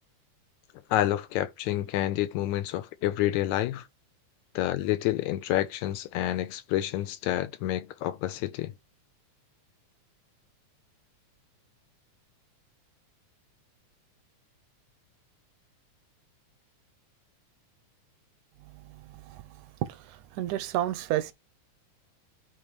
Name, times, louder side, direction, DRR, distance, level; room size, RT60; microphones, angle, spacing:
voice 1, 0.9-3.9 4.6-8.7, left 14 dB, 80° left, 1.8 m, -28 dB
voice 2, 18.6-21.3, right 13 dB, 80° right, 2.1 m, -32 dB
8.7 x 3.0 x 4.6 m
omnidirectional pair, 3.5 m